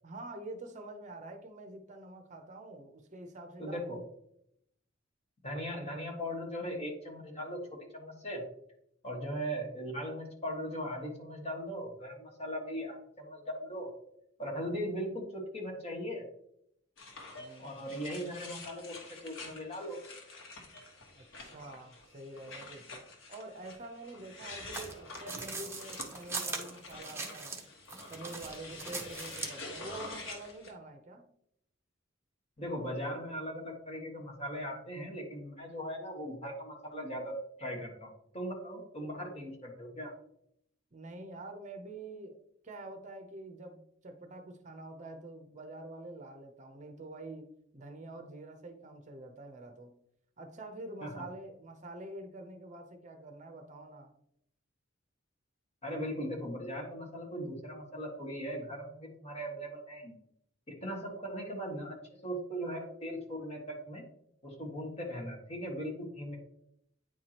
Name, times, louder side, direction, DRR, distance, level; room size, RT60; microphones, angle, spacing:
voice 1, 0.0-3.8 17.4-17.8 21.1-23.0 23.3-27.6 28.1-31.3 40.9-42.4 42.6-47.5 47.7-49.9 50.4-54.1, right 2 dB, 40° right, 5 dB, 0.7 m, -46 dB
voice 2, 3.6-4.0 5.4-7.6 7.9-8.4 9.0-13.9 14.4-16.3 17.6-19.0 19.2-20.0 32.6-40.1 51.0-51.2 55.8-60.1 60.8-62.0 62.2-64.0 64.4-66.4, equal, 30° left, -1 dB, 1.7 m, -39 dB
sound 1, 17.0-30.7, left 2 dB, 80° left, 1.6 m, -47 dB
sound 2, 24.7-27.6 27.9-29.6, right 3 dB, 15° right, 1.0 m, -40 dB
9.4 x 4.7 x 2.9 m, 0.73 s
head